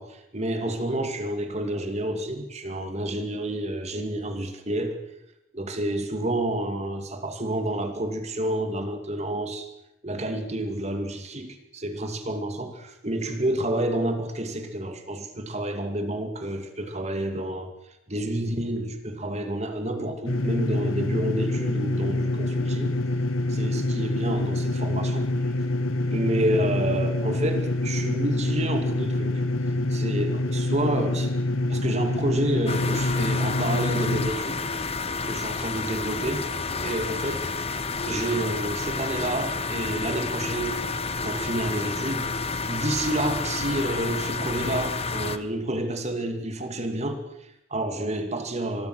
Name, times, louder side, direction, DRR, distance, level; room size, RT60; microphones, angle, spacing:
voice 1, 0.0-5.0 5.5-9.7 10.0-17.7 18.1-22.9 23.5-25.3 26.1-29.4 29.9-31.3 31.7-34.7 35.2-36.5 36.8-37.5 38.0-40.9 41.2-42.4 42.7-48.9, right 1 dB, 30° right, 6 dB, 2.5 m, -29 dB
sound 1, 20.3-34.3, left 2 dB, 75° left, 1.8 m, -26 dB
sound 2, 32.7-45.4, left 4 dB, 30° left, 1.1 m, -30 dB
25.5 x 21.0 x 6.3 m, 0.85 s
head